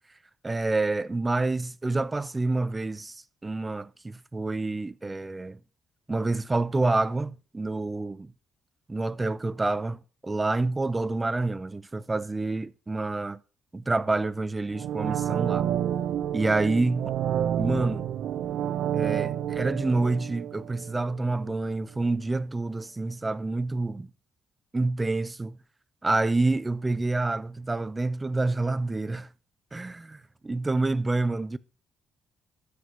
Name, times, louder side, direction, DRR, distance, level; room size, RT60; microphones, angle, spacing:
voice 1, 0.4-5.6 6.1-8.3 8.9-13.4 13.7-15.7 16.3-17.1 17.6-18.1 18.9-24.1 24.7-25.6 26.0-29.3 29.7-31.6, right 2 dB, 20° right, 0.5 m, -28 dB
sound 1, 14.7-21.6 21.9-22.0, right 10 dB, 75° right, 0.7 m, -29 dB
13.0 x 4.9 x 5.5 m
cardioid pair, 90°, 0 cm